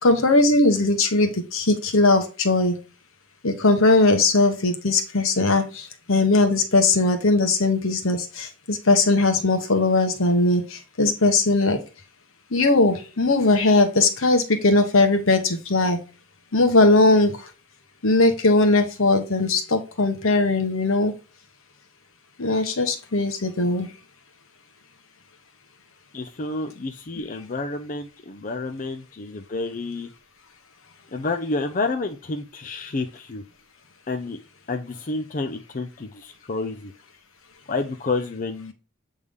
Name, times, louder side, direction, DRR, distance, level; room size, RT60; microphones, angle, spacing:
voice 1, 0.0-2.7 3.4-11.8 12.5-16.0 16.5-17.3 18.0-21.1 22.4-23.9, left 2 dB, 75° left, 7 dB, 1.1 m, -19 dB
voice 2, 26.1-30.1 31.1-33.4 34.1-34.4 34.7-36.9 37.7-38.7, left 3 dB, 40° left, 5 dB, 0.5 m, -29 dB
7.9 x 3.5 x 3.5 m, 0.33 s
head